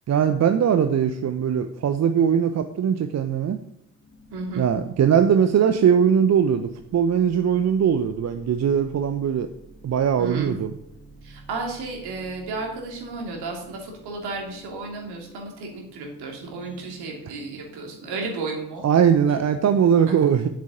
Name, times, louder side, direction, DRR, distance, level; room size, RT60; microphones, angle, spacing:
voice 1, 0.1-3.6 4.6-9.5 9.8-10.7 17.2-17.3 18.8-20.5, right 8 dB, 35° right, 9 dB, 0.9 m, -20 dB
sound 1, 2.9-3.3 3.7-19.6, equal, 25° left, 2.9 m, -50 dB
voice 2, 4.3-4.6 10.2-10.5 11.2-18.8, right 3 dB, 60° right, 1 dB, 3.3 m, -33 dB
8.5 x 7.5 x 8.7 m, 0.78 s
figure-of-eight pair, 40°, 44 cm